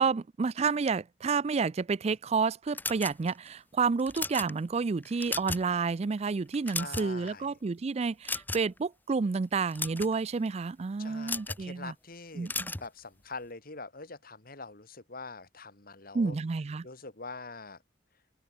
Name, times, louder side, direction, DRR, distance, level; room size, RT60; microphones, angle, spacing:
voice 1, 0.0-11.9 12.4-12.7 16.1-16.9, right 4 dB, 35° right, 0.4 m, -30 dB
sound 1, 2.7-3.5 4.0-4.5 5.0-5.7 6.0-6.2 6.5-7.3 8.2-8.8 9.5-10.1 11.2-11.6 12.4-12.9, left 3 dB, 10° left, 1.0 m, -35 dB
voice 2, 6.7-7.6 11.0-16.4 16.8-17.8, left 3 dB, 55° left, 3.2 m, -44 dB
open air
head